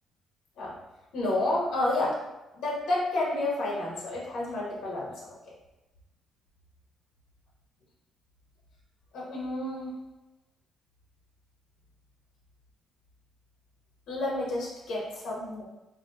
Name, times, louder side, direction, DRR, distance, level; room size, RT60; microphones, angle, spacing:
voice 1, 1.1-2.2 2.5-5.3 9.1-9.9 14.1-15.6, left 2 dB, 85° left, -5 dB, 1.1 m, -30 dB
4.2 x 2.8 x 2.7 m, 1.0 s
cardioid pair, 125°, 0 cm